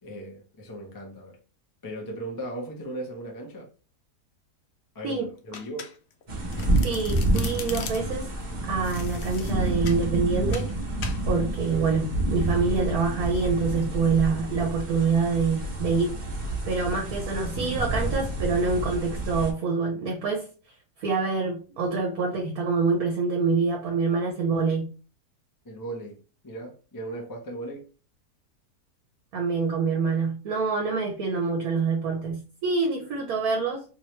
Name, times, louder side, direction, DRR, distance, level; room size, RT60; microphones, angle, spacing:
voice 1, 0.0-1.4 1.8-3.7 4.9-5.9 25.6-27.9, right 1 dB, 25° left, 0.5 m, -37 dB
Domestic sounds home sounds, 5.5-6.2 6.5-8.2 8.8-10.0 10.5-10.7 11.0-11.2, left 6 dB, 65° left, 0.6 m, -40 dB
sound 1, 6.3-19.5, right 1 dB, 35° right, 0.9 m, -29 dB
voice 2, 6.8-8.3 8.6-10.7 11.3-16.1 16.6-20.5 21.0-24.9 29.3-33.8, right 4 dB, 65° right, 1.2 m, -26 dB
3.1 x 3.0 x 3.1 m
omnidirectional pair, 1.7 m